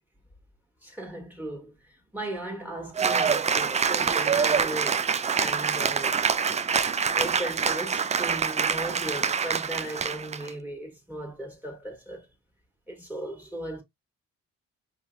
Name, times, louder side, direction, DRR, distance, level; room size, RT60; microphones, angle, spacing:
voice 1, 0.8-5.0 5.4-6.2 7.1-12.3 12.9-13.8, right 1 dB, 5° right, 1.7 m, -37 dB
Cheering / Applause, 3.0-10.5, right 6 dB, 25° right, 0.4 m, -25 dB
5.6 x 2.8 x 2.2 m
cardioid pair, 90°, 30 cm